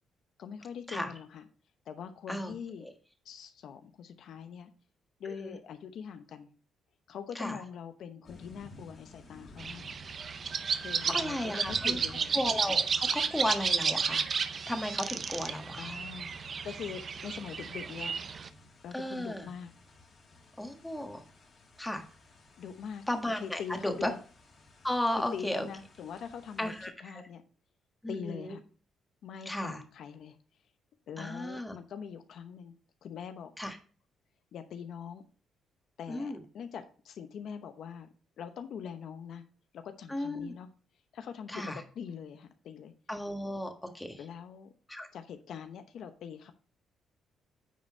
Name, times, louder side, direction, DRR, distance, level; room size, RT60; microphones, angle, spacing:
voice 1, 0.4-1.4 1.9-2.9 3.2-4.7 5.2-6.5 7.1-9.8 10.8-12.3 15.8-16.3 16.6-18.2 18.8-19.7 22.6-23.1 23.4-24.2 25.3-26.7 27.0-27.4 28.1-28.6 29.2-30.4 31.1-32.7 33.0-33.5 34.5-35.2 36.0-38.1 38.4-39.4 39.7-40.7 41.1-42.9 44.2-44.7 45.1-46.5, left 7 dB, 70° left, 8 dB, 0.9 m, -43 dB
voice 2, 5.2-5.6 7.3-7.6 11.0-12.0 12.3-14.3 14.7-16.0 18.9-19.5 20.6-21.2 21.8-22.0 23.1-24.1 24.8-25.7 26.6-27.2 28.0-28.5 29.4-29.8 31.2-31.7 33.6-33.8 36.1-36.4 40.1-40.5 41.5-41.8 43.1-44.2 44.9-45.1, left 1 dB, 10° left, 5 dB, 1.5 m, -34 dB
sound 1, 8.2-26.9, left 2 dB, 45° left, 2.6 m, -56 dB
sound 2, 9.6-18.5, right 6 dB, 45° right, 0.6 m, -32 dB
9.3 x 4.3 x 4.5 m, 0.40 s
cardioid pair, 90°, 0 cm